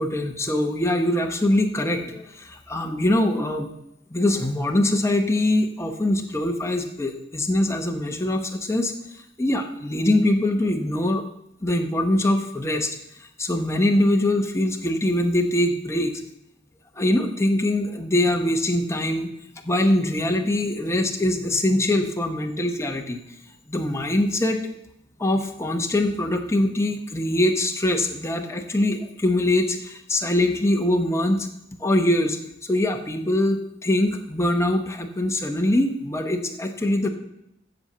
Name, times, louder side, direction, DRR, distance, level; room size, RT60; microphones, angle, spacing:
voice 1, 0.0-3.7 4.1-8.9 9.4-11.2 11.6-12.9 13.4-16.1 17.0-19.3 19.6-23.2 23.7-24.6 25.2-31.5 31.8-37.1, left 1 dB, 15° left, 3 dB, 0.9 m, -23 dB
7.9 x 7.3 x 6.6 m, 0.81 s
head